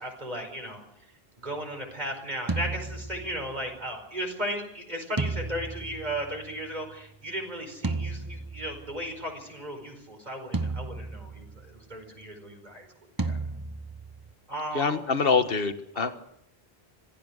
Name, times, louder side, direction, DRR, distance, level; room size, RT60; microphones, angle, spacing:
voice 1, 0.0-12.9 13.2-13.4 14.5-15.1 15.9-16.1, equal, 45° right, 3 dB, 5.2 m, -36 dB
sound 1, 2.5-3.7 5.2-6.7 7.8-9.0 10.5-11.8 13.2-14.3, right 3 dB, 20° right, 1.0 m, -33 dB
voice 2, 14.7-16.2, left 5 dB, 65° left, 10 dB, 1.6 m, -25 dB
25.5 x 16.0 x 6.5 m, 0.74 s
omnidirectional pair, 1.0 m